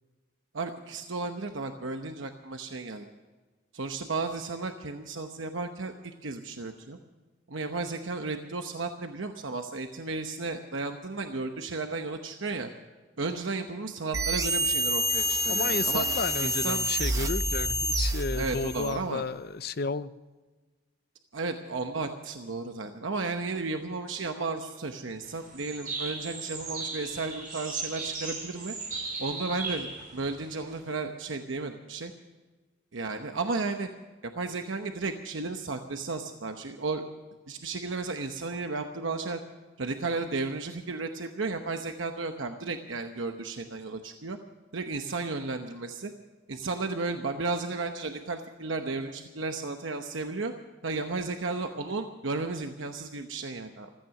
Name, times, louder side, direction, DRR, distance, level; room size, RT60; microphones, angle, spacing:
voice 1, 0.5-3.1 3.7-7.0 7.5-12.7 13.2-16.1 16.4-16.8 18.3-19.2 21.3-28.7 29.2-32.1 32.9-33.9 34.2-37.1 37.5-39.4 39.8-44.4 44.7-46.1 46.5-50.5 50.8-53.9, right 3 dB, 80° right, 6 dB, 1.0 m, -34 dB
sound 1, 14.1-19.0, right 1 dB, 15° right, 0.8 m, -28 dB
voice 2, 15.5-20.1, left 4 dB, 50° left, 15 dB, 0.5 m, -32 dB
sound 2, 25.2-31.0, right 4 dB, 45° right, 5.2 m, -37 dB
15.5 x 14.5 x 6.0 m, 1.3 s
head